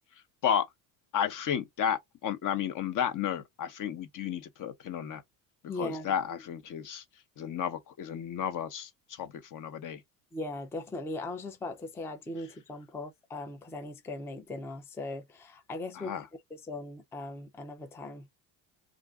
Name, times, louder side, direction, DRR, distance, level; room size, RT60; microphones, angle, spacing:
voice 1, 1.1-5.2 5.8-7.0 7.4-10.0 15.9-16.3, left 9 dB, 40° left, 0.8 m, -32 dB
voice 2, 5.7-6.1 10.3-16.2 16.5-18.3, left 2 dB, 5° left, 0.4 m, -39 dB
2.5 x 2.5 x 3.5 m
supercardioid pair, 100°, 47 cm